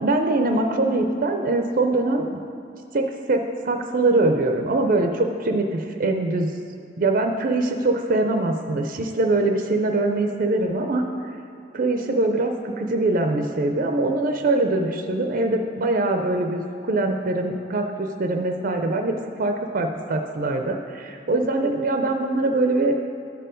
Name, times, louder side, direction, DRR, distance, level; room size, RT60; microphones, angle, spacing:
voice 1, 0.0-2.4 2.9-6.5 7.0-11.0 11.7-23.0, right 2 dB, 45° right, 5 dB, 0.5 m, -23 dB
12.5 x 4.5 x 5.0 m, 2.6 s
head